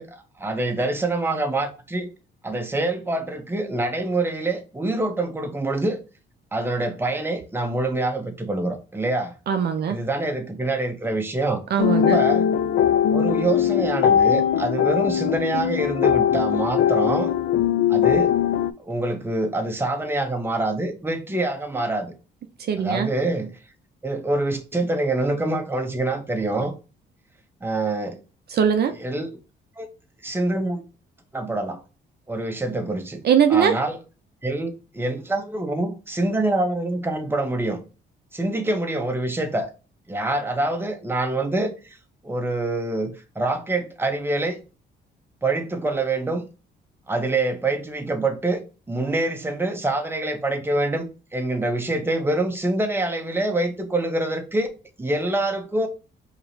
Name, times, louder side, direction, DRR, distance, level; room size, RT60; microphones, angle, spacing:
voice 1, 0.0-2.1 2.4-6.0 6.5-9.3 9.9-11.6 12.1-12.5 13.1-17.3 17.9-18.4 18.8-22.1 22.8-23.6 24.0-26.7 27.6-28.2 28.9-29.3 29.8-29.9 30.2-30.8 31.3-31.8 32.3-33.2 33.5-34.0 34.4-37.8 38.3-39.7 40.1-41.7 42.2-44.6 45.4-46.5 47.1-48.6 48.9-54.7 55.0-55.9, right 2 dB, 10° right, 0.9 m, -25 dB
voice 2, 9.5-10.0 11.7-12.2 22.6-23.1 28.5-29.0 33.2-33.8, right 8 dB, 55° right, 0.5 m, -20 dB
sound 1, 11.8-18.7, left 9 dB, 70° left, 0.5 m, -20 dB
4.8 x 3.0 x 2.7 m
cardioid pair, 90°, 20 cm